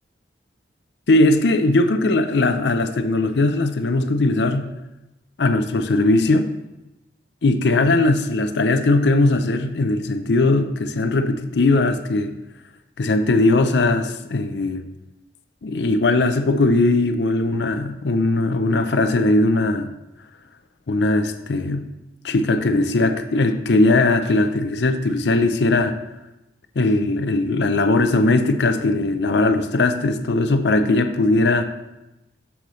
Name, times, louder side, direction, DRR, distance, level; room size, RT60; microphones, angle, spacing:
voice 1, 1.1-4.7 5.4-6.5 7.4-12.3 13.0-14.8 15.6-19.9 20.9-21.9 22.2-26.0 26.8-31.7, left 2 dB, 75° left, 9 dB, 0.5 m, -19 dB
7.8 x 7.1 x 3.1 m, 0.96 s
head